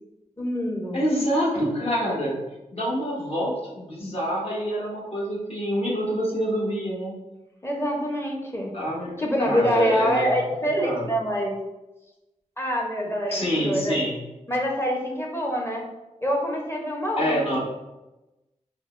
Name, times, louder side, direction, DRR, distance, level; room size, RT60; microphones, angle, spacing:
voice 1, 0.4-1.0 7.6-8.7 9.2-11.6 12.6-14.0 14.5-15.8 16.2-17.6, equal, 20° left, 0 dB, 0.8 m, -25 dB
voice 2, 0.9-2.4 2.7-7.1 8.7-9.1 9.4-10.3 10.8-11.0 13.3-14.1 17.2-17.6, equal, 50° left, -5 dB, 1.2 m, -26 dB
4.9 x 2.1 x 2.5 m, 1.0 s
wide cardioid pair, 70°, 13 cm